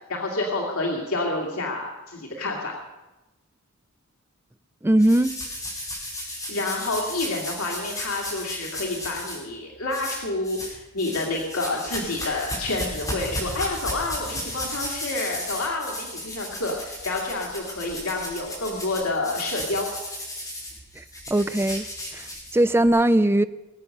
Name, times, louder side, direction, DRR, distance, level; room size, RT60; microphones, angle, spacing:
voice 1, 0.1-2.7 6.5-19.9, left 2 dB, 85° left, 0 dB, 2.4 m, -29 dB
voice 2, 4.8-5.3 21.0-21.1 21.3-21.9 22.1-22.3 22.5-23.4, right 1 dB, 10° right, 12 dB, 0.4 m, -19 dB
sound 1, 5.0-9.4 9.9-10.7 11.0-22.9, left 1 dB, 15° left, 5.1 m, -34 dB
20.5 x 8.7 x 6.6 m, 1.0 s
head